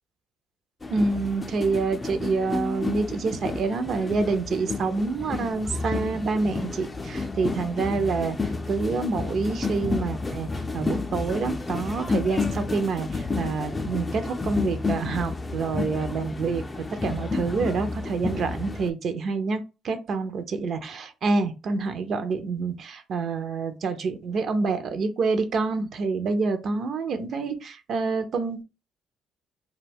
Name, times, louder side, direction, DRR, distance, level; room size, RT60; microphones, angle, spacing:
sound 1, 0.8-18.9, left 3 dB, 25° left, 0.4 m, -31 dB
voice 1, 0.9-8.4 8.7-10.5 10.7-28.6, right 4 dB, 55° right, 0.5 m, -27 dB
2.2 x 2.1 x 3.3 m
supercardioid pair, 70°, 0 cm